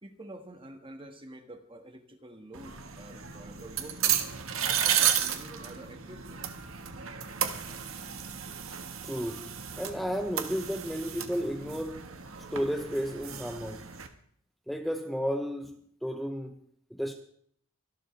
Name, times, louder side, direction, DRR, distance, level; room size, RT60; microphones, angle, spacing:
voice 1, 0.0-4.2 4.6-6.6, right 1 dB, 25° right, 1.7 m, -48 dB
sound 1, 2.5-14.1, right 9 dB, 80° right, 1.5 m, -33 dB
voice 2, 9.0-12.1 12.5-13.9 14.7-16.6 16.9-17.1, equal, ahead, 0.9 m, -33 dB
25.0 x 12.0 x 3.4 m
head